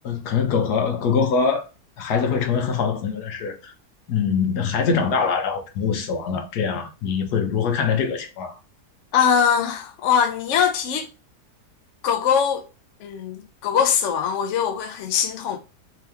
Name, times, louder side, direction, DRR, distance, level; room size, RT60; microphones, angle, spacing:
voice 1, 0.0-1.7 2.0-3.7 4.1-8.6, left 6 dB, 80° left, 1.4 m, -23 dB
voice 2, 9.1-11.1 12.0-12.7 13.0-15.6, left 7 dB, 60° left, 0.8 m, -22 dB
3.4 x 2.9 x 3.4 m
omnidirectional pair, 1.7 m